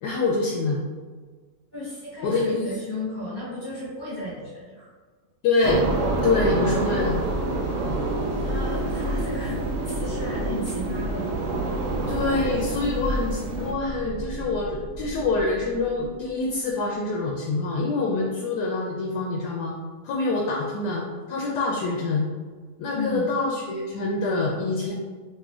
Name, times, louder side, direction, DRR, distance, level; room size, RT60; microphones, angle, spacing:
voice 1, 0.0-0.8 2.2-2.6 5.4-5.8 6.2-7.2 12.1-19.7 20.0-22.3 22.8-24.9, left 3 dB, 75° left, -2 dB, 1.1 m, -25 dB
voice 2, 1.7-4.9 8.3-11.3 22.9-23.3, left 1 dB, 30° left, -9 dB, 1.0 m, -34 dB
sound 1, 5.6-13.7, right 2 dB, 85° right, 0.6 m, -27 dB
sound 2, 11.5-16.9, right 2 dB, 65° right, 1.0 m, -39 dB
4.1 x 2.9 x 2.4 m, 1.5 s
omnidirectional pair, 1.9 m